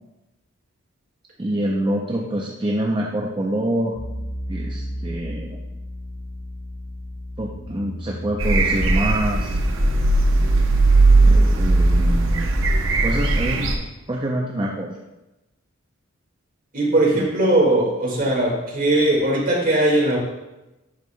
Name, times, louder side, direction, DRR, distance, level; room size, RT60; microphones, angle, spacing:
voice 1, 1.4-4.0 4.5-5.6 7.4-9.6 11.2-12.5 13.0-13.8 14.1-15.0 17.1-17.3, right 1 dB, 25° right, -2 dB, 0.6 m, -26 dB
sound 1, 4.0-13.5, equal, 50° left, 2.0 m, -30 dB
sound 2, 8.4-13.8, right 2 dB, 70° right, 0.8 m, -18 dB
voice 2, 16.7-20.2, right 1 dB, 45° right, -3 dB, 1.9 m, -19 dB
11.0 x 5.4 x 2.2 m, 1.0 s
head